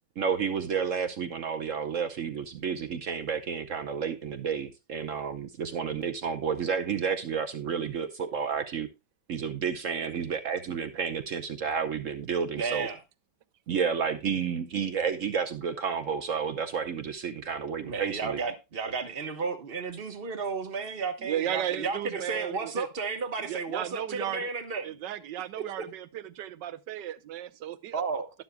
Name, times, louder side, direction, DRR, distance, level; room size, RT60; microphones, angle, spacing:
voice 1, 0.2-8.9 9.3-12.9 13.7-18.4, right 6 dB, 55° right, 0.9 m, -31 dB
voice 2, 12.5-13.0 17.8-25.0 25.6-25.7 27.9-28.3, right 4 dB, 35° right, 1.2 m, -33 dB
voice 3, 21.2-22.9 23.4-24.5 24.8-28.2, right 11 dB, 75° right, 1.4 m, -35 dB
12.0 x 11.0 x 2.2 m
omnidirectional pair, 2.0 m